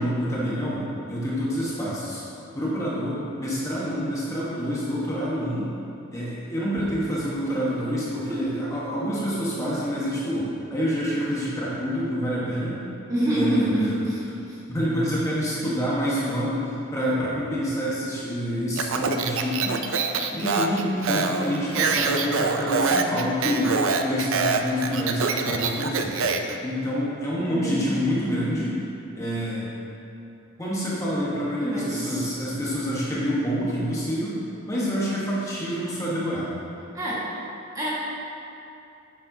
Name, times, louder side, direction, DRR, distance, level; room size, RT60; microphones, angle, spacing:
voice 1, 0.0-2.2 2.5-5.7 6.1-12.7 13.3-13.7 14.7-19.8 20.3-26.2 26.6-28.8 29.1-29.7 30.6-34.3 34.7-36.6, equal, 15° left, -7 dB, 1.2 m, -27 dB
voice 2, 13.1-14.6 27.5-28.0 31.6-32.4 36.9-37.2 37.7-37.9, equal, 15° right, -8 dB, 1.7 m, -26 dB
Speech, 18.8-26.6, right 4 dB, 70° right, 0.5 m, -25 dB
9.6 x 7.3 x 2.8 m, 2.8 s
head